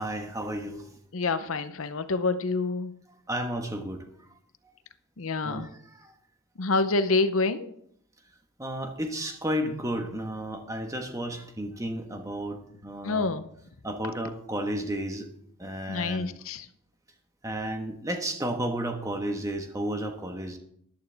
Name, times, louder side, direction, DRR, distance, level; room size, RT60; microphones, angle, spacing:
voice 1, 0.0-1.0 3.3-4.0 5.4-6.1 8.6-13.3 13.8-15.3 15.6-16.3 17.4-20.6, right 1 dB, 15° right, 5 dB, 1.2 m, -32 dB
voice 2, 1.1-2.9 5.2-5.7 6.6-7.7 13.0-13.5 15.9-16.7, left 3 dB, 70° left, 12 dB, 0.7 m, -27 dB
14.0 x 11.5 x 3.4 m, 0.69 s
head